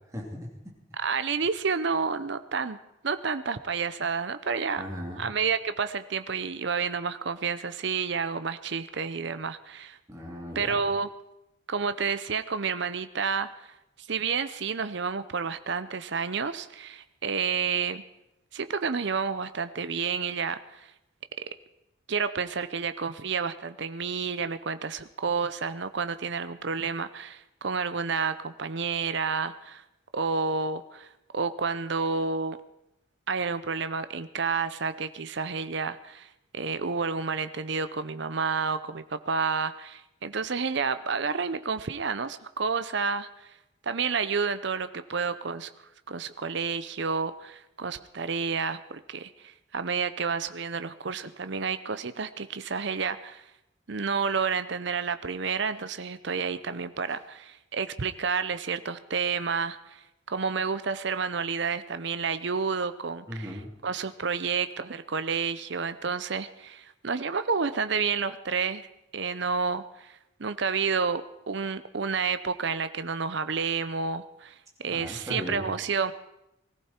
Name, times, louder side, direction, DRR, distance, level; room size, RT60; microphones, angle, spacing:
voice 1, 0.1-0.7 4.8-5.3 10.1-10.8 63.3-63.7 74.9-75.7, equal, 15° right, -1 dB, 2.9 m, -37 dB
voice 2, 1.0-2.8 3.0-4.8 5.2-10.0 10.5-11.1 11.7-13.7 14.1-18.0 18.5-20.9 22.1-29.8 30.1-31.1 31.3-32.6 33.3-36.3 36.5-43.5 43.8-45.7 46.1-53.4 53.9-60.0 60.3-68.8 69.1-74.6 74.8-76.1, right 5 dB, 55° right, 12 dB, 0.7 m, -30 dB
20.5 x 14.5 x 4.5 m, 0.89 s
head